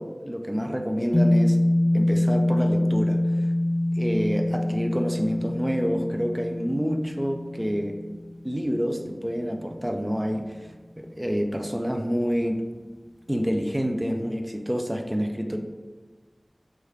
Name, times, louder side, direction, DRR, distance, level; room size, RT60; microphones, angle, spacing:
voice 1, 0.0-1.6 1.9-3.2 4.0-8.0 8.4-10.6 11.0-12.6 13.3-15.6, equal, 15° right, 4 dB, 0.3 m, -27 dB
sound 1, 1.1-9.6, left 1 dB, 55° left, 0.5 m, -25 dB
3.2 x 2.3 x 3.1 m, 1.3 s
wide cardioid pair, 45°, 0 cm